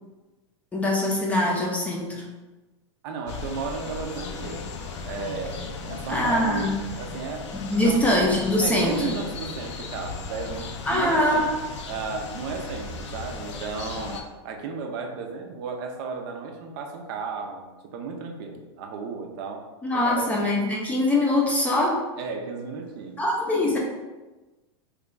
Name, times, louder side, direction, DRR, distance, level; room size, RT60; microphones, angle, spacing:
voice 1, 0.7-2.2 6.1-6.8 7.5-9.1 10.9-11.5 19.8-22.0 23.2-23.8, left 1 dB, 10° left, -2 dB, 0.5 m, -23 dB
voice 2, 3.0-4.8 5.0-7.5 7.8-8.1 8.6-11.5 11.9-14.2 14.4-19.7 19.9-20.3 22.2-23.3, right 5 dB, 50° right, 3 dB, 0.5 m, -34 dB
sound 1, 3.3-14.2, left 4 dB, 85° left, 0.5 m, -36 dB
3.1 x 2.3 x 3.7 m, 1.2 s
supercardioid pair, 135°, 15 cm